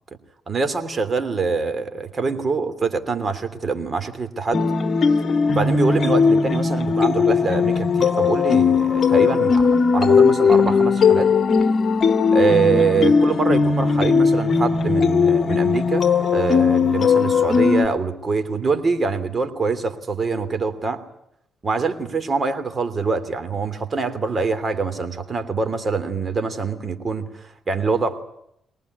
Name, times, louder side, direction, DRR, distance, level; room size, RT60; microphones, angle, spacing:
voice 1, 0.5-4.7 5.5-11.3 12.3-16.1 16.3-21.0 21.6-28.2, right 4 dB, 35° right, 9 dB, 3.0 m, -24 dB
sound 1, 4.5-17.9, left 5 dB, 45° left, 1.6 m, -18 dB
23.5 x 19.0 x 9.6 m, 0.76 s
cardioid pair, 90°, 0 cm